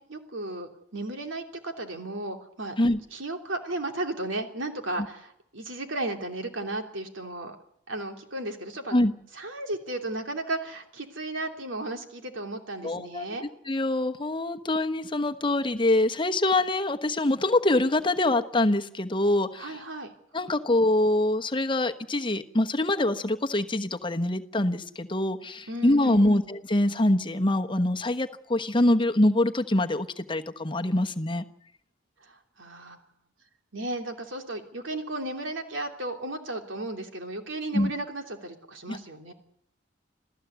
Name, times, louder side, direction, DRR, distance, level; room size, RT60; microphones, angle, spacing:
voice 1, 0.0-2.8 3.1-7.6 7.9-9.0 9.3-13.4 19.5-20.1 20.4-20.5 25.7-26.4 32.2-33.0 33.7-39.3, right 2 dB, 80° right, 4 dB, 3.0 m, -34 dB
voice 2, 12.8-13.3 13.7-19.8 20.3-31.4 37.7-37.9 38.9-39.0, left 1 dB, 25° left, 6 dB, 1.1 m, -24 dB
27.5 x 15.5 x 8.2 m, 0.75 s
head